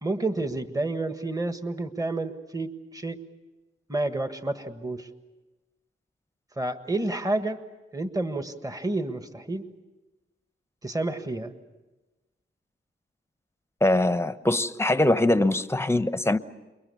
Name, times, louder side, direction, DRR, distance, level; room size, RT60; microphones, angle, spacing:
voice 1, 0.0-3.2 3.9-5.1 6.6-7.6 7.9-9.7 10.8-11.5, right 2 dB, 15° right, 1.5 m, -30 dB
voice 2, 13.8-16.4, left 1 dB, 10° left, 0.9 m, -22 dB
28.5 x 23.0 x 7.1 m
cardioid pair, 75°, 21 cm